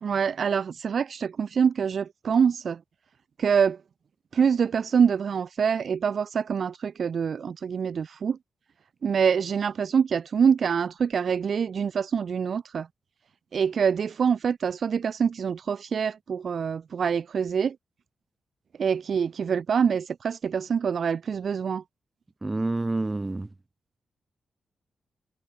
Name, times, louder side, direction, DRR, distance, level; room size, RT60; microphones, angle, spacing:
voice 1, 0.0-2.8 3.4-3.8 4.3-8.4 9.0-12.9 13.5-17.8 18.8-21.8, right 6 dB, 60° right, 0.5 m, -25 dB
voice 2, 22.4-23.5, right 2 dB, 20° right, 3.6 m, -28 dB
cardioid pair, 95°, 0 cm